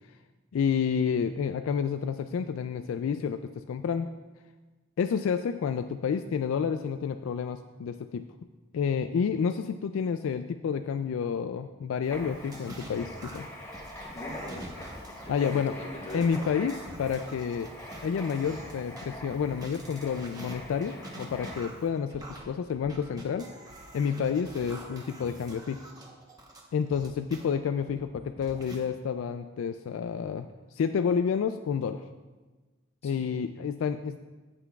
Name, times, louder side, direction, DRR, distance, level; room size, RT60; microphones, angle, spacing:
voice 1, 0.5-4.1 5.0-8.3 8.7-13.5 15.3-15.7 16.1-17.7 18.0-23.5 23.9-25.8 26.7-30.5 30.7-32.0 33.0-34.2, left 6 dB, 75° left, 9 dB, 0.3 m, -29 dB
Writing, 12.0-21.8, equal, 15° left, 1.1 m, -44 dB
sound 1, 12.3-19.1 19.5-27.4 27.9-28.8, right 1 dB, 20° right, 0.9 m, -46 dB
voice 2, 14.1-14.9 15.2-16.5 33.0-33.3, left 1 dB, 30° left, -1 dB, 1.3 m, -42 dB
15.5 x 5.9 x 2.3 m, 1.2 s
head